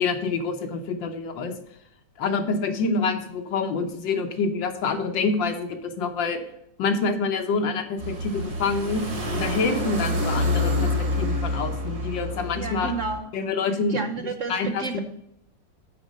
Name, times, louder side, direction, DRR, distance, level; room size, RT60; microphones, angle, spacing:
voice 1, 0.0-1.5 2.2-6.4 6.8-9.1 9.3-12.9 13.3-14.0 14.5-15.0, left 4 dB, 85° left, 6 dB, 1.8 m, -26 dB
sound 1, 8.0-13.2, left 1 dB, 50° right, 2.5 m, -27 dB
voice 2, 12.5-13.3 13.9-15.0, right 4 dB, 65° right, 7 dB, 0.7 m, -31 dB
9.6 x 4.5 x 6.4 m, 0.76 s
omnidirectional pair, 2.0 m